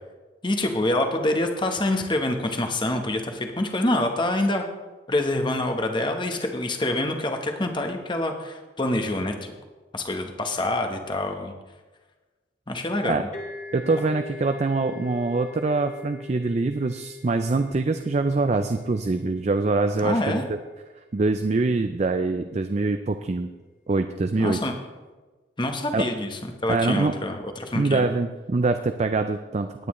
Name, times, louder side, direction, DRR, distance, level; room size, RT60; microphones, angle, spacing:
voice 1, 0.4-4.6 5.1-9.5 9.9-11.5 12.7-13.2 20.0-20.4 24.4-24.7 25.6-28.0, left 1 dB, 25° left, 4 dB, 1.1 m, -26 dB
sound 1, 13.3-20.9, left 4 dB, 40° left, 1.5 m, -43 dB
voice 2, 13.7-20.6 21.1-23.5 23.9-24.6 25.9-26.0 26.7-27.1 27.8-29.9, right 3 dB, 35° right, 8 dB, 0.4 m, -24 dB
18.0 x 9.3 x 3.1 m, 1.3 s
head